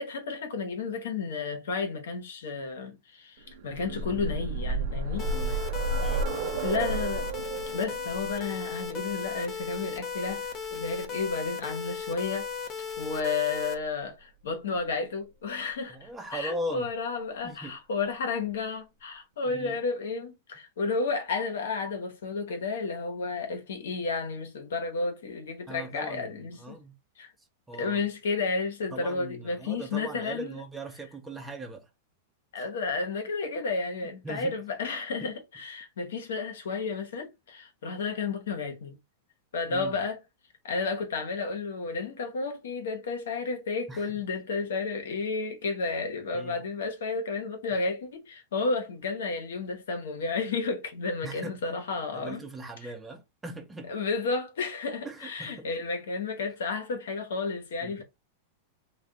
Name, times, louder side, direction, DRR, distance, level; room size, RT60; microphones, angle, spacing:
voice 1, 0.0-5.3 6.6-7.3 7.7-12.5 13.0-26.8 27.2-27.3 27.7-30.6 32.5-38.9 39.5-40.2 40.6-52.4 52.8-52.9 53.9-58.0, left 4 dB, 80° left, 1.0 m, -32 dB
sound 1, 3.5-11.3 12.4-12.5 12.9-13.0, right 3 dB, 65° right, 0.5 m, -32 dB
sound 2, 5.2-13.7, left 6 dB, 35° left, 0.7 m, -36 dB
voice 2, 5.2-5.6 6.0-6.3 15.9-16.9 17.4-17.7 19.5-19.8 25.7-26.9 27.7-28.1 28.9-31.8 34.2-34.5 39.7-40.0 43.9-44.2 46.3-46.6 51.2-51.6 52.1-53.9 55.0-55.7 57.8-58.0, right 2 dB, 15° right, 0.7 m, -39 dB
2.5 x 2.4 x 3.4 m
hypercardioid pair, 120°, 0 cm